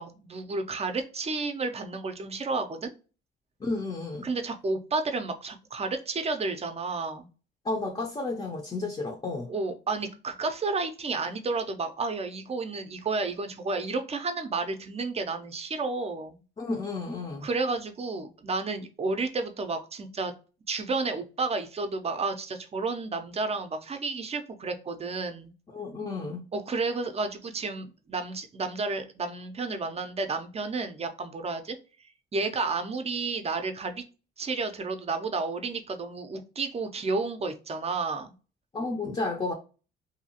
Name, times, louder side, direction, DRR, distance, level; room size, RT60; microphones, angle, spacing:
voice 1, 0.0-2.9 4.2-7.3 9.5-16.4 17.4-20.3 20.7-25.5 26.5-31.8 32.3-34.0 34.4-38.3, right 3 dB, 30° right, 0.5 m, -31 dB
voice 2, 3.6-4.3 7.6-9.5 16.6-17.5 25.7-26.4 38.7-39.5, left 3 dB, 25° left, 0.6 m, -32 dB
2.7 x 2.4 x 2.8 m
cardioid pair, 90°, 20 cm